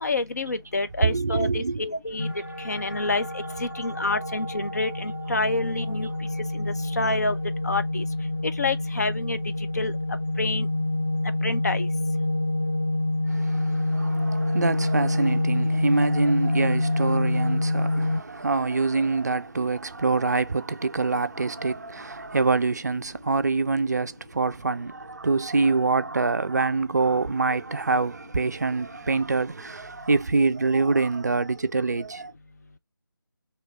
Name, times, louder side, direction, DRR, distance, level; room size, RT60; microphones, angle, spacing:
voice 1, 0.0-2.3 2.6-3.3 3.6-6.1 6.5-7.4 7.6-8.0 8.4-9.4 9.8-9.9 10.4-10.7 11.4-11.9, left 2 dB, 45° left, 0.5 m, -27 dB
voice 2, 1.0-1.9 3.5-3.8 7.0-7.2 13.3-32.3, right 3 dB, 45° right, 0.4 m, -25 dB
sound 1, 2.2-18.2, left 2 dB, 30° left, 1.0 m, -27 dB
3.0 x 3.0 x 4.5 m
figure-of-eight pair, 160°, 12 cm